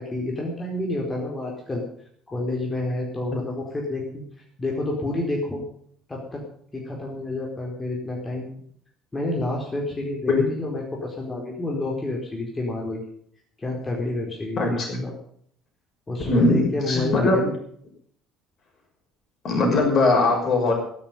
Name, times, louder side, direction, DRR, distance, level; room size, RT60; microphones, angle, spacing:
voice 1, 0.0-1.8 2.3-4.2 4.6-5.6 6.1-6.4 6.7-8.6 9.1-13.0 13.6-15.1 16.1-17.5 19.7-19.9, left 2 dB, 20° left, -1 dB, 4.6 m, -29 dB
voice 2, 14.6-15.0 16.2-17.5 19.4-20.7, left 2 dB, 45° left, 2 dB, 6.3 m, -21 dB
16.0 x 12.5 x 5.4 m, 0.63 s
figure-of-eight pair, 55°, 0 cm